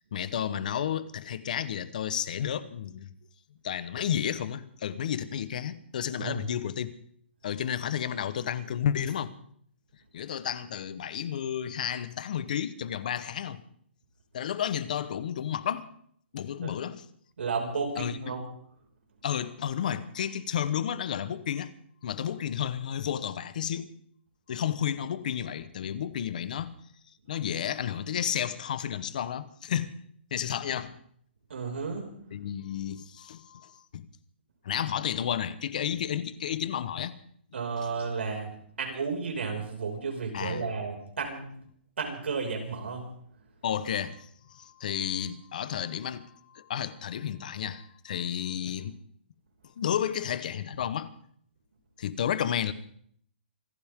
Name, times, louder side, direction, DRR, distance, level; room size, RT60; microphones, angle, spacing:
voice 1, 0.1-3.1 3.6-6.9 7.4-9.3 10.1-13.6 14.3-15.9 16.3-17.0 18.0-18.2 19.2-21.7 22.0-23.9 24.5-26.7 27.3-29.9 30.3-30.9 32.3-34.0 34.6-37.1 40.3-40.7 43.6-49.0 49.8-51.1 52.0-52.7, left 9 dB, 45° left, 1.1 m, -32 dB
voice 2, 17.4-18.4 31.5-32.1 37.5-41.6 42.0-43.1, right 5 dB, 80° right, 5.8 m, -33 dB
26.5 x 14.0 x 3.7 m
hypercardioid pair, 175°, 6 cm